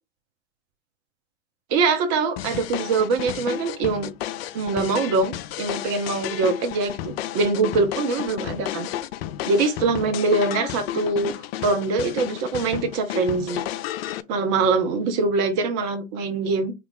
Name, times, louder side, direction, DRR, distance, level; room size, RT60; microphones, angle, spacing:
voice 1, 1.7-4.1 4.5-8.9 9.5-11.3 11.6-13.6 14.3-16.7, right 3 dB, 45° right, 1.1 m, -23 dB
sound 1, 2.4-14.2, left 12 dB, 50° left, 0.4 m, -32 dB
3.1 x 2.5 x 3.6 m
figure-of-eight pair, 95°, 40 cm